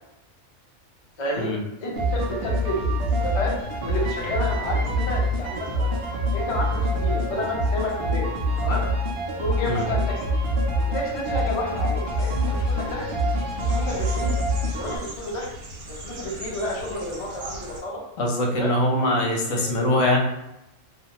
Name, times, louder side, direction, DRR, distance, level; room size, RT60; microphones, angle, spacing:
voice 1, 1.2-1.5 1.8-5.9 6.3-8.3 8.6-8.8 9.4-10.3 10.8-13.0 13.7-14.3 14.7-15.5 15.9-18.0 18.6-19.1 19.5-19.7, left 1 dB, 40° left, -3 dB, 0.5 m, -30 dB
sound 1, 2.0-15.0, equal, 65° right, 0.5 m, -25 dB
sound 2, 12.0-17.8, right 2 dB, 90° right, 1.2 m, -40 dB
voice 2, 18.2-20.2, left 1 dB, 80° left, -1 dB, 1.1 m, -22 dB
2.5 x 2.4 x 2.8 m, 0.87 s
omnidirectional pair, 1.4 m